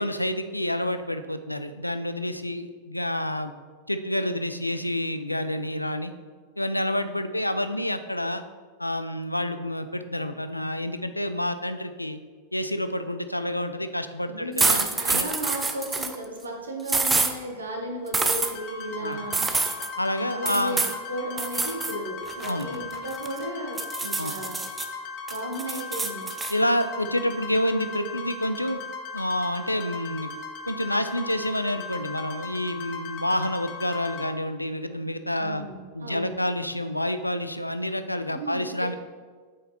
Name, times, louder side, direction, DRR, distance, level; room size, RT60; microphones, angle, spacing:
voice 1, 0.0-3.5 3.9-6.1 6.6-8.4 8.8-12.2 12.5-15.3 19.0-19.2 20.0-20.8 22.5-22.7 24.2-24.3 26.5-28.8 29.1-30.3 30.7-35.6 35.9-38.9, left 1 dB, 85° left, 10 dB, 0.3 m, -28 dB
voice 2, 14.3-19.5 20.3-24.6 25.3-26.3 35.4-36.4 38.3-39.0, right 1 dB, 75° right, 1 dB, 1.1 m, -35 dB
sound 1, 14.6-16.2 16.9-17.3 18.1-18.5 19.3-19.9 20.5-21.0 21.4-21.9 22.3-23.4 23.8-24.9 25.3-26.5, right 3 dB, 10° right, 0.5 m, -26 dB
sound 2, 18.4-34.3, left 4 dB, 40° left, 0.8 m, -38 dB
7.9 x 4.9 x 3.0 m, 1.5 s
figure-of-eight pair, 90°, 0 cm